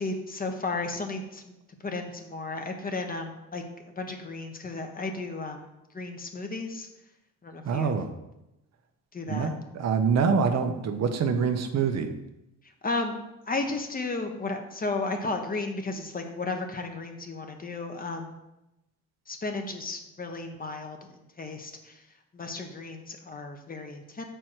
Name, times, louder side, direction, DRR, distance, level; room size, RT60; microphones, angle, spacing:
voice 1, 0.0-1.4 1.8-3.6 4.0-6.9 7.4-8.0 9.1-9.6 12.8-13.2 13.5-18.4 19.3-21.0 21.4-22.0 22.3-24.2, left 3 dB, 30° left, 5 dB, 1.0 m, -34 dB
voice 2, 7.6-8.1 9.3-12.1, right 5 dB, 60° right, 7 dB, 0.8 m, -25 dB
6.2 x 4.6 x 4.5 m, 0.91 s
cardioid pair, 90°, 30 cm